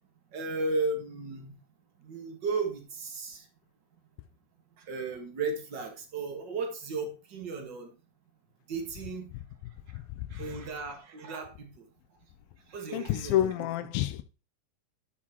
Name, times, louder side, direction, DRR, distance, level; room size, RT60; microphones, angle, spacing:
voice 1, 0.3-1.5 2.0-3.4 4.8-7.9 8.7-9.2 10.3-11.9 12.7-13.7, right 3 dB, 55° right, 1.2 m, -35 dB
voice 2, 9.9-10.5 12.9-14.2, left 12 dB, 85° left, 2.4 m, -29 dB
12.0 x 5.8 x 2.9 m
omnidirectional pair, 4.2 m